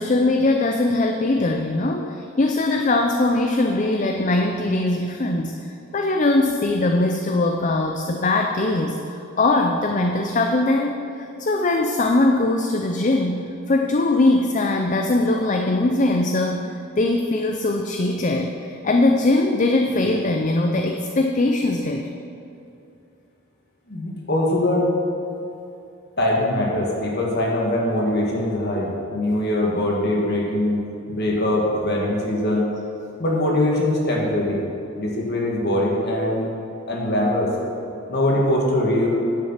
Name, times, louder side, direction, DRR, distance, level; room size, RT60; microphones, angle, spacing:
voice 1, 0.0-5.6 5.9-9.0 9.4-16.6 17.0-22.1, left 2 dB, 35° left, 3 dB, 0.5 m, -21 dB
voice 2, 23.9-24.8 26.2-30.8 31.1-32.7 33.2-34.6 35.0-36.5 36.9-37.5 38.1-39.2, left 1 dB, 50° left, -2 dB, 2.1 m, -22 dB
9.7 x 8.6 x 5.8 m, 2.7 s
head